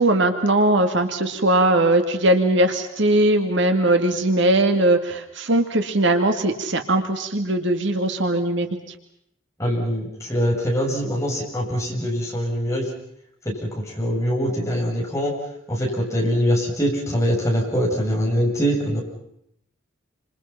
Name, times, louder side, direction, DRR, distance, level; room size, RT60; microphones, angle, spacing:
voice 1, 0.0-8.7, right 1 dB, 60° right, 6 dB, 2.3 m, -20 dB
voice 2, 9.6-12.9 13.6-15.3 15.7-19.0, equal, 15° left, -2 dB, 7.8 m, -23 dB
28.5 x 26.5 x 5.9 m, 0.75 s
head